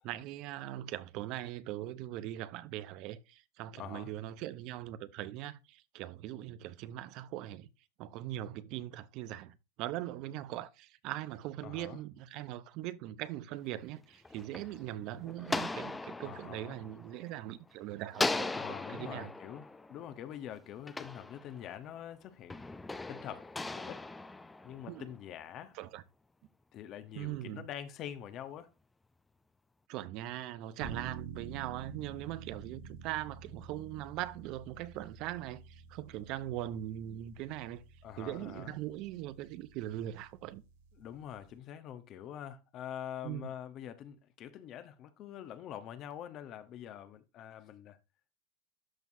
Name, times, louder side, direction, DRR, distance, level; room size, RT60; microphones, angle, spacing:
voice 1, 0.0-7.7 8.0-19.3 24.9-25.1 25.7-26.0 27.2-27.6 29.9-37.8 38.2-40.6 43.2-43.5, right 13 dB, 50° right, 0.7 m, -41 dB
voice 2, 3.8-4.1 11.6-12.0 16.2-16.8 18.5-22.6 23.1-24.0 24.6-25.8 26.7-28.7 38.0-38.7 41.0-48.0, left 10 dB, 40° left, 1.0 m, -45 dB
sound 1, 14.0-17.7 18.1-21.9 22.5-25.2, left 3 dB, 10° left, 0.6 m, -39 dB
sound 2, 30.8-41.6, right 6 dB, 80° right, 2.1 m, -49 dB
12.5 x 4.6 x 2.7 m
supercardioid pair, 130°, 0 cm